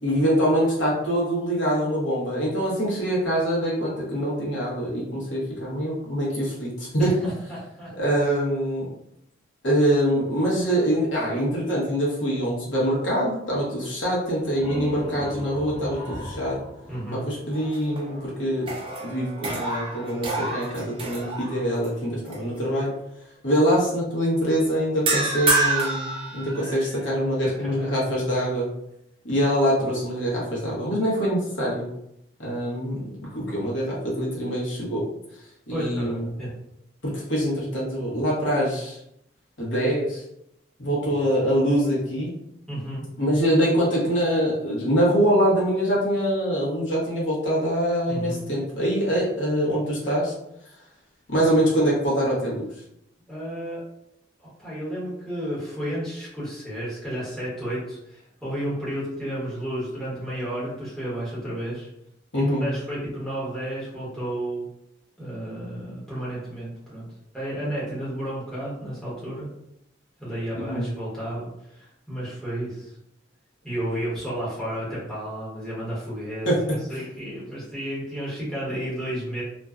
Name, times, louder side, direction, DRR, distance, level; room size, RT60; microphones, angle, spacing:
voice 1, 0.0-7.1 8.0-8.9 9.6-16.6 17.1-18.7 19.0-22.9 23.4-28.7 29.2-31.9 32.4-35.0 35.7-36.3 37.0-39.0 39.6-40.2 40.8-42.3 43.2-50.3 51.3-52.6 62.3-62.7 70.5-70.9 76.5-76.6, equal, 75° left, -5 dB, 0.9 m, -24 dB
voice 2, 7.0-7.9 16.9-17.3 27.7-28.2 35.7-36.5 41.1-41.3 42.7-43.1 48.1-48.5 53.3-53.8 54.6-61.9 62.3-64.7 65.2-67.1 67.3-69.5 70.2-72.9 73.6-76.5 76.9-79.4, right 1 dB, 5° left, -9 dB, 1.0 m, -32 dB
sound 1, 14.3-17.9, equal, 30° left, 0.5 m, -37 dB
sound 2, 17.5-18.2 18.6-21.9 22.3-22.6 25.1-27.0, right 2 dB, 30° right, 0.4 m, -28 dB
2.5 x 2.2 x 2.3 m, 0.80 s
head